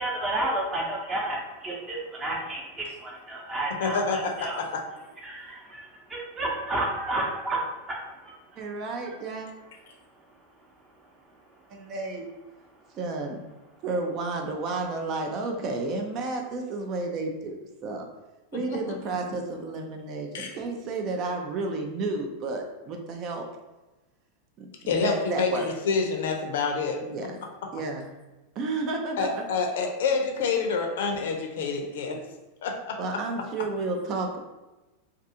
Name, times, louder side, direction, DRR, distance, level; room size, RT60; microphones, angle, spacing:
voice 1, 0.0-4.6 5.2-8.3, right 1 dB, 20° right, -2 dB, 0.8 m, -31 dB
voice 2, 3.8-4.8 18.5-18.8 20.3-20.5 24.9-27.0 29.2-32.2 32.6-33.0, left 4 dB, 70° left, 2 dB, 0.5 m, -27 dB
voice 3, 8.6-9.5 11.7-12.3 13.0-13.4 13.8-18.0 18.5-23.4 24.6-25.7 27.0-27.3 27.7-28.1 28.6-29.4 32.1-32.3 33.0-34.4, right 3 dB, 45° right, 3 dB, 0.4 m, -31 dB
2.4 x 2.4 x 2.7 m, 1.1 s
hypercardioid pair, 100°, 0 cm